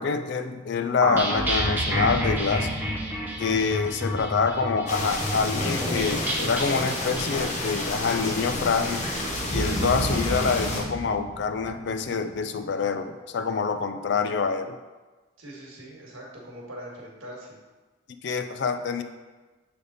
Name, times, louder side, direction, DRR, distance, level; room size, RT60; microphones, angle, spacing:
voice 1, 0.0-2.7 3.4-9.0 9.5-14.8 18.2-19.0, left 5 dB, 55° left, 9 dB, 0.4 m, -26 dB
sound 1, 1.0-10.5, equal, 10° right, 0.7 m, -31 dB
sound 2, 1.3-4.3 9.3-12.5, right 1 dB, 45° right, 1.1 m, -33 dB
sound 3, 4.9-10.8, left 1 dB, 35° left, 0.8 m, -30 dB
voice 2, 15.4-17.6, equal, 75° right, -2 dB, 1.5 m, -42 dB
7.0 x 3.4 x 3.9 m, 1.2 s
head